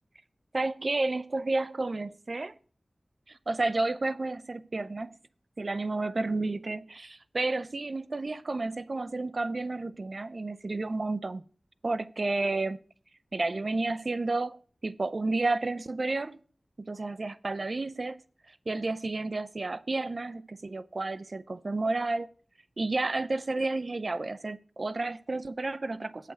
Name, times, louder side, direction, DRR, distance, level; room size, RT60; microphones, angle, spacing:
voice 1, 0.5-2.5 3.3-5.2 5.6-11.4 11.8-12.8 13.3-16.4 16.8-18.2 18.5-22.3 22.8-26.3, right 2 dB, 60° right, 0.5 m, -31 dB
8.2 x 5.7 x 6.1 m
cardioid pair, 40°, 0 cm